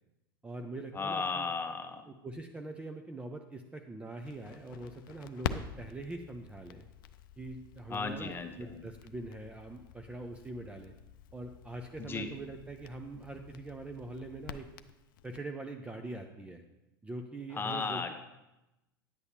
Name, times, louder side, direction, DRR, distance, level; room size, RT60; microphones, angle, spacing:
voice 1, 0.4-1.5 2.1-6.9 7.4-10.9 11.3-14.7 15.2-16.6 17.0-18.1, right 2 dB, 10° right, 4 dB, 0.5 m, -43 dB
voice 2, 0.9-2.0 7.9-8.8 12.0-12.3 17.5-18.1, left 4 dB, 15° left, 6 dB, 0.8 m, -35 dB
Crackle, 4.2-15.4, left 9 dB, 60° left, 0.4 m, -46 dB
10.0 x 8.0 x 2.8 m, 0.97 s
figure-of-eight pair, 85°, 13 cm